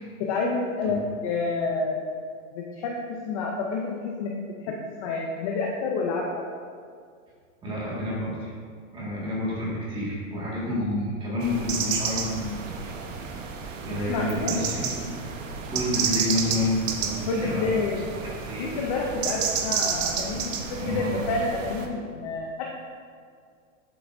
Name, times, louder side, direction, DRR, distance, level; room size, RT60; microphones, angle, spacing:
voice 1, 0.2-2.0 2.5-4.3 4.6-6.5 14.1-14.5 17.3-18.0 18.6-22.7, left 3 dB, 25° left, -1 dB, 0.5 m, -29 dB
voice 2, 7.6-8.5 8.9-13.0 13.8-15.1 15.7-18.0 18.4-18.8 20.7-21.2, left 1 dB, 10° right, -6 dB, 1.8 m, -29 dB
sound 1, 11.4-21.9, right 6 dB, 65° right, 1.1 m, -31 dB
11.0 x 7.7 x 2.6 m, 2.1 s
supercardioid pair, 170°, 41 cm